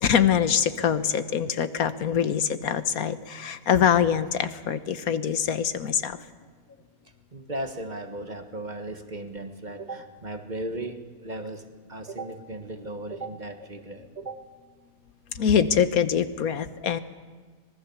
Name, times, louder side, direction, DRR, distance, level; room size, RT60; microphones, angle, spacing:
voice 1, 0.0-6.2 15.3-17.0, left 8 dB, 90° left, 12 dB, 1.5 m, -24 dB
voice 2, 7.3-14.5, right 2 dB, 35° right, 6 dB, 1.5 m, -36 dB
25.5 x 19.0 x 7.1 m, 1.5 s
omnidirectional pair, 1.5 m